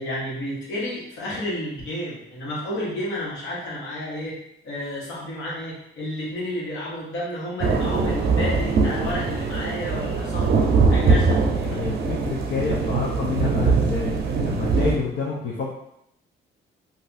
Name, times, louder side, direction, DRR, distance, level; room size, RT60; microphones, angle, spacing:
voice 1, 0.0-4.4 4.6-11.9, left 1 dB, 80° left, -6 dB, 1.3 m, -31 dB
sound 1, 7.6-15.0, right 4 dB, 55° right, 0.6 m, -22 dB
voice 2, 11.7-15.7, left 5 dB, 60° left, -4 dB, 0.6 m, -28 dB
2.6 x 2.4 x 4.0 m, 0.77 s
cardioid pair, 90°, 20 cm